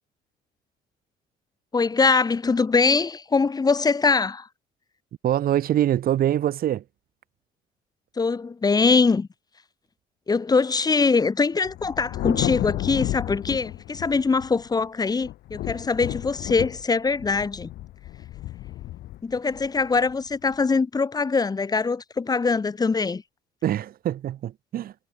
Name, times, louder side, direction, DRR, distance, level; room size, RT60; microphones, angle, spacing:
voice 1, 1.7-4.5 8.2-9.3 10.3-17.7 19.2-23.2, left 4 dB, 20° left, 1.6 m, -22 dB
voice 2, 5.2-6.8 23.6-24.9, right 11 dB, 60° right, 3.2 m, -24 dB
Thunder, 11.6-14.7 15.2-20.5, left 15 dB, 75° left, 2.8 m, -32 dB
cardioid pair, 110°, 17 cm